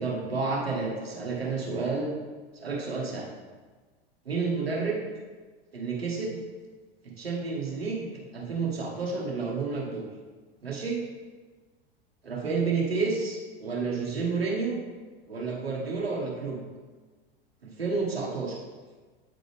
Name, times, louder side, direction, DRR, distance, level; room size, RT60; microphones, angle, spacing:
voice 1, 0.0-2.1 2.5-3.3 4.2-5.0 5.7-6.4 7.2-8.1 8.3-10.1 10.6-11.0 12.2-14.8 15.3-16.7 17.6-18.6, right 4 dB, 90° right, -3 dB, 1.4 m, -30 dB
8.9 x 3.9 x 3.4 m, 1.4 s
hypercardioid pair, 90°, 29 cm